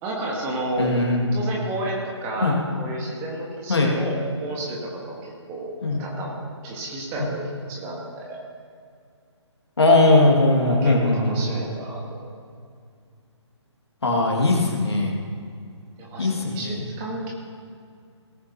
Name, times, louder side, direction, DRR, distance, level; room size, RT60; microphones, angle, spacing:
voice 1, 0.0-1.0 1.3-6.4 6.6-7.4 7.7-8.4 10.7-12.2 16.0-17.3, right 1 dB, 15° right, -2 dB, 1.6 m, -32 dB
voice 2, 0.8-1.4 2.4-2.6 3.7-3.9 5.8-6.0 7.2-7.3 9.8-11.4 14.0-15.2 16.2-16.8, left 2 dB, 60° left, 0 dB, 2.3 m, -19 dB
18.5 x 9.6 x 3.0 m, 2.3 s
figure-of-eight pair, 140°, 15 cm